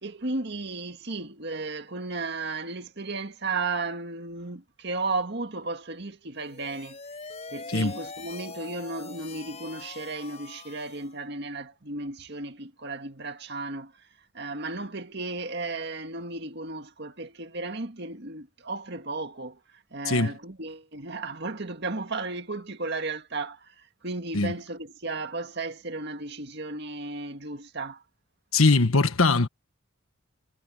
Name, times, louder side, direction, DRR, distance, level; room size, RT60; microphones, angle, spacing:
voice 1, 0.0-7.0 7.5-13.9 14.3-28.0, right 3 dB, 55° right, 2.0 m, -34 dB
sound 1, 6.4-11.2, left 4 dB, 30° left, 6.1 m, -43 dB
voice 2, 28.5-29.5, left 3 dB, 90° left, 1.4 m, -21 dB
head